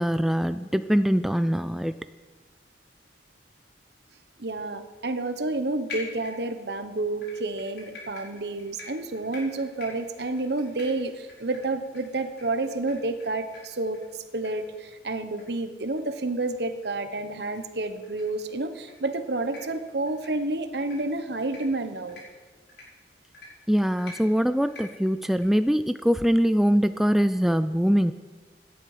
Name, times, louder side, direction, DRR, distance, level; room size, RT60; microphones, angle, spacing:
voice 1, 0.0-2.0 23.7-28.1, equal, ahead, 11 dB, 0.3 m, -23 dB
voice 2, 4.4-22.2, right 2 dB, 70° right, 9 dB, 1.1 m, -30 dB
sound 1, 5.9-6.7 7.2-13.3 13.5-13.6 13.9-14.0 14.4-14.5 14.8-14.9 15.4-15.5 15.8-15.9 16.4-16.5 17.5-17.6 18.0-18.2 18.7-18.9 19.4-19.6 20.1-20.3 20.8-21.0 21.4-21.6 22.1-22.2 22.7-22.8 23.3-23.5 24.0-24.2 24.7-24.8 25.3-25.5, left 3 dB, 75° left, 5.9 m, -43 dB
17.5 x 11.0 x 5.0 m, 1.3 s
head